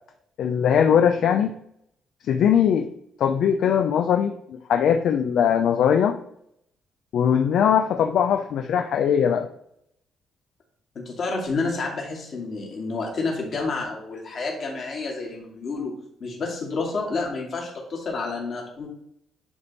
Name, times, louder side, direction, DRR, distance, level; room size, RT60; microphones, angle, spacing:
voice 1, 0.4-1.5 2.3-2.9 3.2-6.2 7.1-9.5, left 8 dB, 65° left, 5 dB, 0.4 m, -20 dB
voice 2, 11.0-15.9 16.2-18.9, left 3 dB, 40° left, -1 dB, 2.1 m, -29 dB
9.5 x 3.6 x 4.0 m, 0.72 s
cardioid pair, 155°, 0 cm